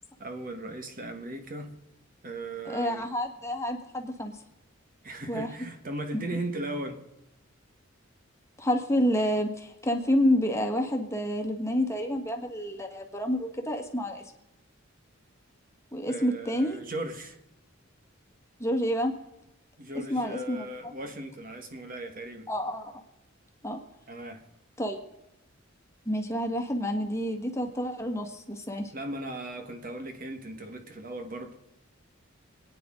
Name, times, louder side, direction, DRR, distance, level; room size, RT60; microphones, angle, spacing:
voice 1, 0.2-1.7 2.2-3.1 5.0-7.0 16.1-17.4 19.8-22.5 24.1-24.4 28.9-31.6, right 1 dB, 45° right, 6 dB, 1.5 m, -37 dB
voice 2, 2.6-4.4 5.3-5.5 8.6-14.2 15.9-16.8 18.6-19.1 20.1-20.6 22.5-23.0 23.6-23.8 24.8-25.0 26.0-28.9, equal, 15° left, 3 dB, 1.5 m, -28 dB
27.0 x 9.6 x 3.8 m, 0.91 s
head